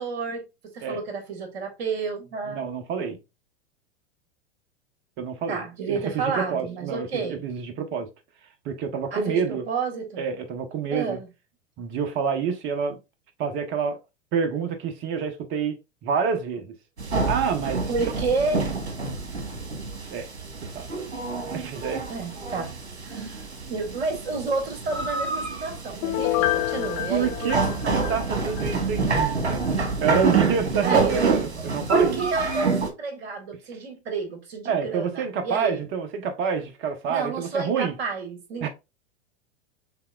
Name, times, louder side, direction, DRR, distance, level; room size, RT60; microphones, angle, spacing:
voice 1, 0.0-2.6 5.5-7.5 9.1-10.2 10.9-11.3 17.9-18.8 22.1-22.7 23.0-23.4 23.7-28.1 30.8-31.1 31.9-35.9 37.1-38.7, right 4 dB, 65° right, 1.9 m, -30 dB
voice 2, 2.5-3.2 5.2-5.6 5.9-8.1 8.6-9.6 10.2-11.2 11.8-13.0 13.4-14.0 14.3-15.8 16.0-16.7 17.3-17.9 20.1-20.3 20.7-20.9 21.5-22.0 27.1-27.6 28.1-32.2 34.6-37.9 38.6-38.7, right 6 dB, 35° right, 1.0 m, -27 dB
sound 1, 17.0-32.9, right 4 dB, 85° right, 1.4 m, -27 dB
Piano, 26.0-28.7 29.1-29.2, left 15 dB, 40° left, 0.6 m, -28 dB
5.7 x 3.5 x 2.4 m
hypercardioid pair, 100°, 33 cm